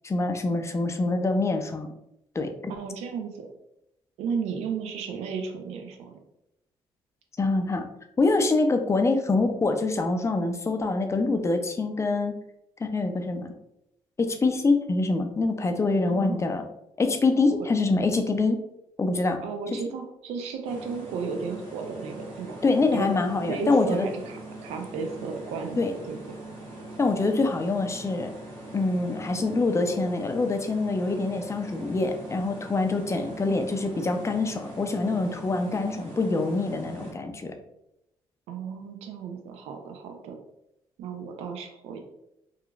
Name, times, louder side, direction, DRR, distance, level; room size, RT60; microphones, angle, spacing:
voice 1, 0.0-1.9 2.3-2.7 7.4-7.8 8.2-12.4 12.8-13.5 14.2-16.6 17.0-18.6 19.0-19.4 22.6-24.1 25.8-25.9 27.0-28.3 28.7-37.5, left 3 dB, 25° left, 6 dB, 0.4 m, -25 dB
voice 2, 2.7-3.5 4.2-6.2 16.1-16.4 17.5-17.7 19.4-22.6 22.9-23.1 23.5-25.8 26.1-26.2 38.5-40.4 41.0-42.0, right 5 dB, 80° right, 4 dB, 0.4 m, -34 dB
sound 1, 20.6-37.1, right 2 dB, 50° right, 1.0 m, -42 dB
2.9 x 2.4 x 2.3 m, 0.84 s
supercardioid pair, 60°, 11 cm